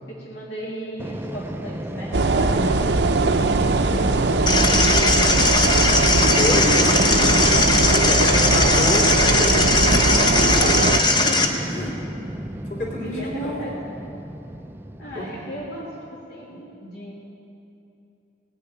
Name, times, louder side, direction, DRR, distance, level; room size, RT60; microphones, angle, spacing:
voice 1, 0.1-5.9 8.3-8.7 10.4-11.6 13.0-14.0 15.0-17.1, equal, 75° left, -5 dB, 2.0 m, -35 dB
Fixed-wing aircraft airplane, 1.0-16.2, right 1 dB, 10° right, 0.3 m, -32 dB
sound 1, 2.1-11.0, right 3 dB, 70° right, 0.6 m, -20 dB
sound 2, 4.5-11.5, left 2 dB, 25° left, 0.9 m, -19 dB
voice 2, 6.1-9.6 10.2-10.7 11.7-11.9 12.7-13.6 15.1-15.3, left 1 dB, 45° left, -4 dB, 3.3 m, -28 dB
18.0 x 6.9 x 8.9 m, 2.8 s
head